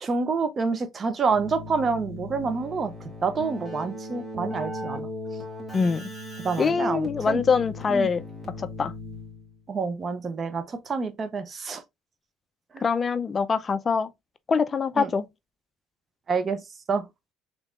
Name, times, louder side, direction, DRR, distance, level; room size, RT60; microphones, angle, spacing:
voice 1, 0.0-2.9 3.2-5.1 6.4-7.4 7.9-8.1 9.7-11.8 12.7-12.9 15.0-15.1 16.3-16.6 16.9-17.1, right 4 dB, 35° right, 0.7 m, -27 dB
Keyboard (musical), 1.3-9.6, left 1 dB, 10° right, 1.8 m, -38 dB
voice 2, 5.7-6.1 6.6-8.2 8.6-8.9 12.8-14.1 14.5-15.2, left 5 dB, 30° left, 0.4 m, -24 dB
3.6 x 3.5 x 2.4 m
supercardioid pair, 100°, 0 cm